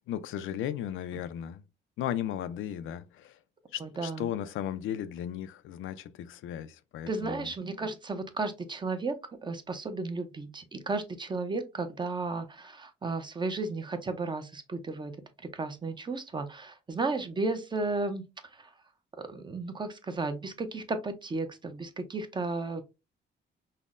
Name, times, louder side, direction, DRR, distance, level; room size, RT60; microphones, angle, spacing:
voice 1, 0.1-1.6 2.0-3.4 3.7-7.5, left 10 dB, 80° left, 0.4 m, -35 dB
voice 2, 3.8-4.3 7.1-9.2 9.4-15.1 15.4-18.7 19.2-22.8, right 3 dB, 25° right, 0.5 m, -34 dB
5.5 x 2.0 x 2.4 m
cardioid pair, 130°, 20 cm